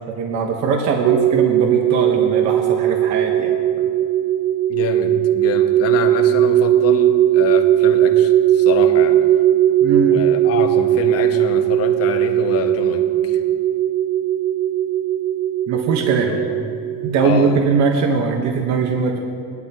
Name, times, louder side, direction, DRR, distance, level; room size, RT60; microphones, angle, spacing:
voice 1, 0.1-3.9 9.8-10.2 15.7-16.3 17.0-19.2, right 5 dB, 50° right, 2 dB, 1.2 m, -20 dB
sound 1, 1.0-17.6, right 12 dB, 75° right, 1.1 m, -18 dB
voice 2, 4.7-9.2 10.1-13.4 16.3-16.6 17.2-17.6, left 7 dB, 40° left, 5 dB, 1.2 m, -26 dB
19.5 x 12.0 x 2.9 m, 2.5 s
cardioid pair, 145°, 35 cm